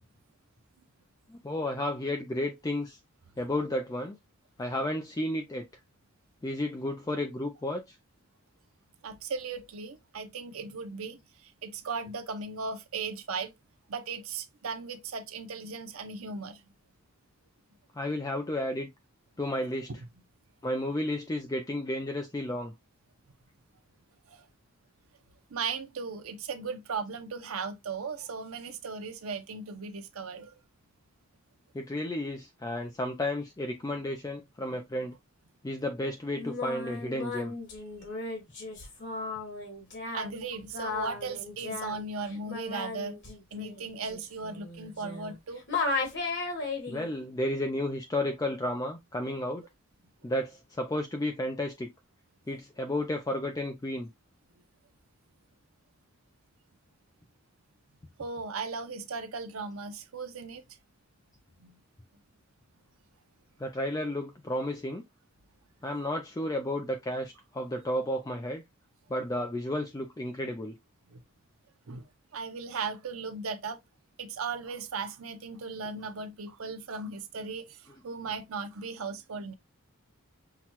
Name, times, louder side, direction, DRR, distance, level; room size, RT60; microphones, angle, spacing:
voice 1, 1.3-3.0 3.4-4.2 4.6-5.7 6.4-8.0 18.0-18.9 19.4-20.0 20.6-22.7 31.7-35.1 35.6-37.5 46.9-49.6 50.2-51.9 52.5-54.1 63.6-65.0 65.8-68.6 69.1-70.7 77.9-78.0, left 1 dB, 15° left, 0.4 m, -32 dB
voice 2, 9.0-13.5 13.9-16.6 24.3-24.5 25.5-30.5 40.1-43.2 43.5-45.6 58.2-60.6 61.6-61.7 71.1-71.2 71.9-72.0 72.3-73.8 74.2-79.5, right 4 dB, 80° right, 0.7 m, -37 dB
Singing, 36.3-45.4 45.7-47.1, left 3 dB, 55° left, 1.6 m, -35 dB
5.7 x 2.2 x 2.9 m
head